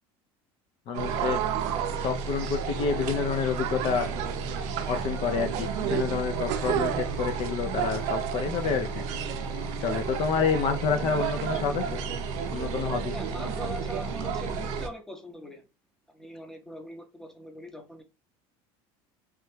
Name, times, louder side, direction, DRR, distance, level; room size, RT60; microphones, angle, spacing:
voice 1, 0.9-1.4 2.0-4.1 4.9-9.0 9.8-12.0 12.5-13.1, left 6 dB, 50° left, 0.4 m, -28 dB
sound 1, 0.9-14.9, right 10 dB, 70° right, 0.5 m, -33 dB
sound 2, 1.0-14.9, right 3 dB, 55° right, 1.0 m, -35 dB
voice 2, 13.1-15.7 16.1-18.0, equal, 5° left, 0.6 m, -41 dB
3.1 x 2.2 x 3.1 m
supercardioid pair, 120°, 12 cm